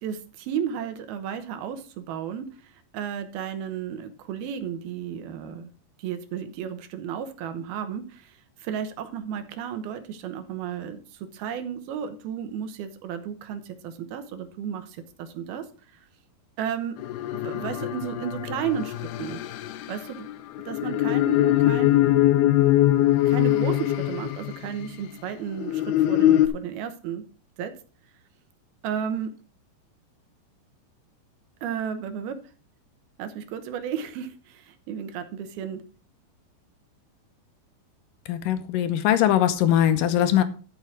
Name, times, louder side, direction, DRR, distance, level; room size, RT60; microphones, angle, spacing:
voice 1, 0.0-5.7 6.0-15.7 15.9-16.1 16.6-17.0 17.3-19.4 19.9-20.3 20.7-22.2 23.2-27.2 27.6-27.7 28.8-29.4 31.6-32.4 33.2-35.8, right 8 dB, 85° right, 2.9 m, -33 dB
sound 1, 17.0-24.9 25.5-26.5, left 14 dB, 90° left, 2.8 m, -22 dB
voice 2, 38.3-40.4, left 11 dB, 75° left, 2.3 m, -21 dB
12.5 x 5.9 x 4.6 m
omnidirectional pair, 4.3 m